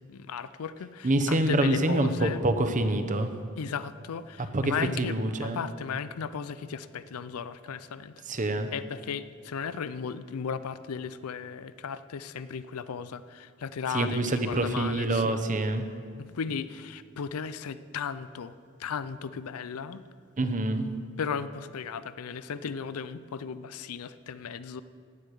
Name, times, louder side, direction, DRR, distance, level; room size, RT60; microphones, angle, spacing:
voice 1, 0.0-2.4 3.6-8.1 8.7-15.4 16.2-18.5 18.8-20.0 21.2-24.8, left 6 dB, 85° left, 14 dB, 0.5 m, -35 dB
voice 2, 1.0-3.3 4.5-5.6 8.3-8.7 13.9-15.9 20.4-20.9, right 2 dB, 35° right, 8 dB, 0.8 m, -26 dB
15.5 x 9.7 x 4.8 m, 2.1 s
head